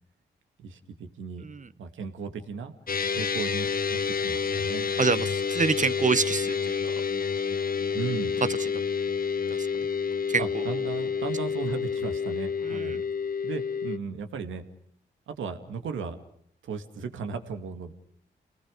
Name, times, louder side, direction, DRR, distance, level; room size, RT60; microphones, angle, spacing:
voice 1, 0.6-1.4 1.8-2.7 3.2-4.9 7.9-8.3 10.4-13.0 13.4-14.6 15.3-16.2 16.6-17.9, right 5 dB, 85° right, 7 dB, 2.2 m, -36 dB
sound 1, 2.9-14.0, left 6 dB, 45° left, 1.1 m, -29 dB
voice 2, 5.0-6.8 8.6-8.7 9.5-9.7 10.3-10.6 12.7-13.0, right 5 dB, 40° right, 16 dB, 1.1 m, -27 dB
29.0 x 19.0 x 6.6 m, 0.64 s
supercardioid pair, 45°, 20 cm